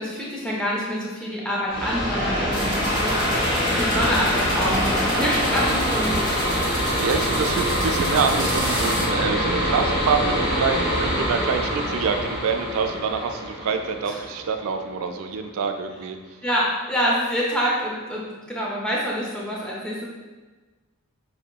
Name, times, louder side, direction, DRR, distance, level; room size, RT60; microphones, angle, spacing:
voice 1, 0.0-3.2 3.6-6.6 14.1-14.2 16.4-20.1, equal, 5° left, -5 dB, 0.5 m, -26 dB
sound 1, 1.7-15.1, equal, 60° left, 1.5 m, -24 dB
sound 2, 2.5-9.1, right 1 dB, 25° left, 1.1 m, -34 dB
voice 2, 7.0-16.2, right 5 dB, 65° right, 6 dB, 0.3 m, -26 dB
4.8 x 2.8 x 2.2 m, 1.3 s
head